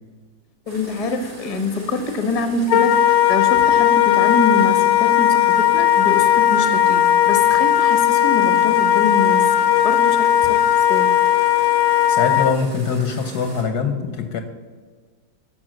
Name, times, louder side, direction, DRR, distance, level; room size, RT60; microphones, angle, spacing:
voice 1, 0.7-10.6 10.9-11.2, left 2 dB, 25° left, 7 dB, 0.8 m, -25 dB
sound 1, 0.7-13.6, right 1 dB, 70° right, 4.8 m, -39 dB
Wind instrument woodwind instrument, 2.7-12.6, left 12 dB, 80° left, 1.4 m, -16 dB
voice 2, 12.1-14.4, left 5 dB, 60° left, 7 dB, 1.2 m, -23 dB
12.5 x 6.7 x 6.2 m, 1.5 s
omnidirectional pair, 2.2 m